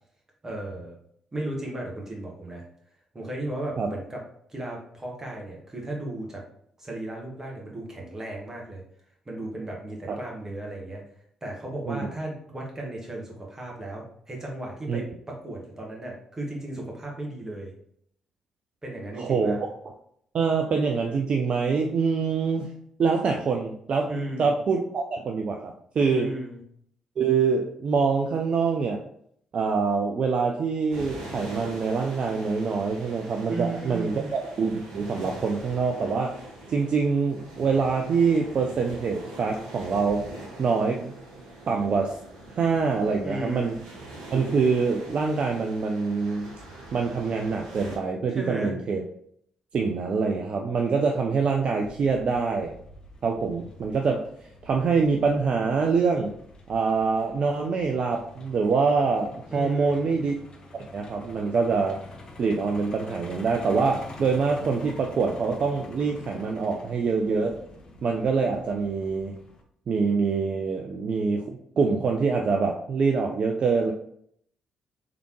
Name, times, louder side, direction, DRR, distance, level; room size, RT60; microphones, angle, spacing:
voice 1, 0.4-1.0 1.3-2.6 3.1-4.2 4.5-6.4 6.8-8.8 9.2-11.0 11.4-17.7 18.8-19.6 24.1-24.6 26.1-26.6 33.5-34.3 43.2-43.8 48.3-48.8 59.5-60.2, right 1 dB, 20° right, -2 dB, 1.6 m, -35 dB
voice 2, 19.2-19.6 20.3-22.7 23.0-24.1 24.4-26.3 27.2-29.0 29.5-36.4 36.7-40.3 40.6-41.1 41.7-42.2 42.5-43.8 44.3-46.5 46.9-49.0 49.7-52.7 53.2-54.3 54.6-56.3 56.7-60.3 60.7-62.0 62.4-67.6 68.0-69.3 69.9-73.9, right 5 dB, 50° right, 2 dB, 0.4 m, -25 dB
sound 1, 30.9-48.0, right 2 dB, 80° right, 0.8 m, -43 dB
Truck, 51.8-69.6, left 2 dB, 40° left, 0.9 m, -47 dB
3.7 x 3.4 x 3.1 m, 0.68 s
figure-of-eight pair, 40°, 2 cm